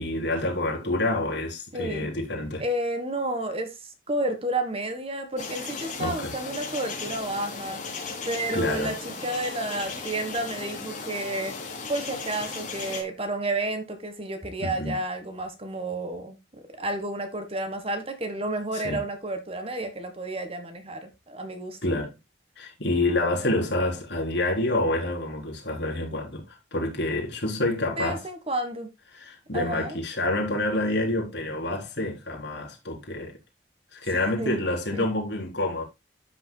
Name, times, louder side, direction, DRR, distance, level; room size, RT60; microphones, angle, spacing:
voice 1, 0.0-2.6 6.0-6.3 8.5-8.9 14.6-15.0 18.7-19.0 21.8-22.1 22.6-28.2 29.1-33.3 33.9-35.8, left 2 dB, 65° left, 3.9 m, -28 dB
voice 2, 1.7-2.1 2.6-7.8 8.2-11.5 11.9-21.9 28.0-28.9 29.5-30.0 34.1-34.6 34.9-35.0, right 1 dB, 30° right, 1.6 m, -31 dB
sound 1, 5.4-13.0, left 4 dB, 40° left, 3.3 m, -36 dB
13.0 x 7.0 x 2.3 m
head